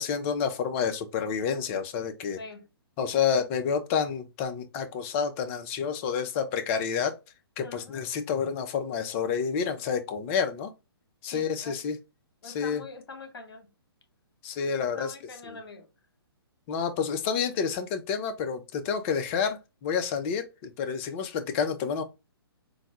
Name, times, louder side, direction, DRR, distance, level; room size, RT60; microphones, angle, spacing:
voice 1, 0.0-2.4 3.0-7.2 7.6-10.7 11.2-12.0 12.4-12.8 14.4-15.1 15.5-15.6 16.7-22.0, left 6 dB, 30° left, 0.6 m, -29 dB
voice 2, 2.4-2.7 7.6-8.0 11.3-11.8 12.4-13.7 14.8-15.9, left 3 dB, 70° left, 1.1 m, -44 dB
3.8 x 2.2 x 2.9 m
hypercardioid pair, 130°, 13 cm